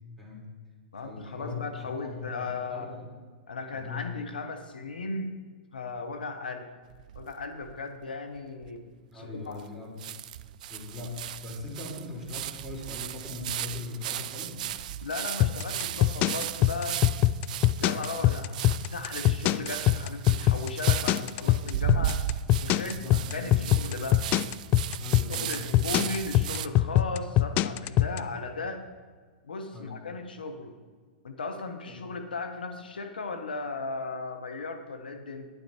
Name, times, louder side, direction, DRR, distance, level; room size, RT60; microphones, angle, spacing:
voice 1, 0.2-0.5 1.0-3.1 3.7-4.1 6.1-6.2 9.1-10.0 10.7-14.6 17.8-18.1 22.7-23.6 25.0-26.1 29.7-30.0 31.9-32.0, left 3 dB, 5° right, -4 dB, 3.5 m, -40 dB
voice 2, 0.9-2.9 3.5-5.3 5.7-6.7 7.1-8.8 9.1-9.6 15.0-17.0 17.8-22.2 22.6-24.3 25.3-28.8 29.4-30.8 31.2-35.5, left 3 dB, 85° left, 7 dB, 1.0 m, -36 dB
sound 1, 6.9-7.8 8.4-8.5 8.6-8.7 9.6-9.7 10.0-26.7, right 12 dB, 60° right, 0.4 m, -36 dB
sound 2, 15.4-28.2, left 14 dB, 35° left, 0.3 m, -22 dB
10.0 x 9.6 x 4.4 m, 1.5 s
hypercardioid pair, 115°, 5 cm